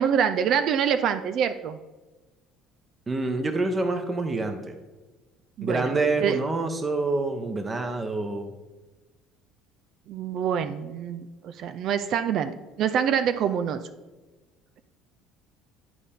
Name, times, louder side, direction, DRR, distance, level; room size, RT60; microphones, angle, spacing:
voice 1, 0.0-1.8 5.6-6.4 10.1-13.8, right 8 dB, 60° right, 10 dB, 0.4 m, -26 dB
voice 2, 3.1-4.8 5.6-8.5, right 3 dB, 25° right, 7 dB, 0.9 m, -27 dB
11.0 x 4.2 x 3.6 m, 1.2 s
supercardioid pair, 85°, 0 cm